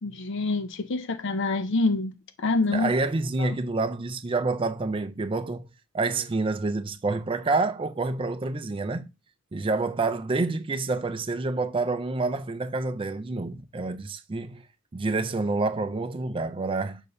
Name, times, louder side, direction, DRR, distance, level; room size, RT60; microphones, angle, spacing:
voice 1, 0.0-2.9 3.4-3.5, left 3 dB, 60° left, 0.6 m, -26 dB
voice 2, 2.7-5.7 5.9-9.1 9.5-14.6 14.9-17.0, right 3 dB, 25° right, 0.4 m, -28 dB
6.7 x 2.7 x 5.3 m
head